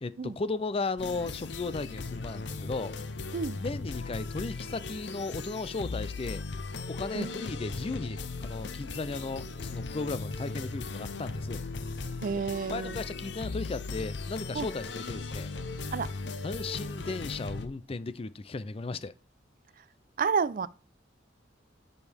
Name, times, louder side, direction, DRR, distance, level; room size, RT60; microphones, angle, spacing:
voice 1, 0.0-2.9 3.5-6.4 6.9-11.6 12.7-15.5 16.4-19.1, left 3 dB, 30° left, 0.4 m, -35 dB
sound 1, 1.0-17.7, left 3 dB, 70° left, 0.7 m, -37 dB
voice 2, 12.2-13.0 14.5-14.7 15.9-16.1 20.2-20.7, right 5 dB, 50° right, 0.4 m, -30 dB
10.5 x 5.4 x 3.5 m
head